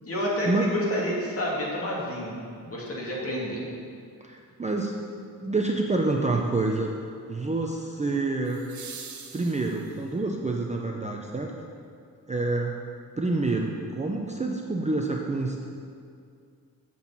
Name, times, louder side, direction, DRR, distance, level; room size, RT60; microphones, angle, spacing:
voice 1, 0.1-2.4 2.7-3.6, left 1 dB, 40° left, -5 dB, 2.2 m, -29 dB
sound 1, 2.9-3.0 8.4-10.2 12.4-12.5, right 6 dB, 55° right, 0.8 m, -44 dB
voice 2, 4.2-5.0 5.4-6.9 7.3-8.7 9.3-11.5 12.3-12.7 13.2-15.6, right 3 dB, 20° right, 0 dB, 0.5 m, -27 dB
7.1 x 6.2 x 7.2 m, 2.3 s
wide cardioid pair, 150°, 35 cm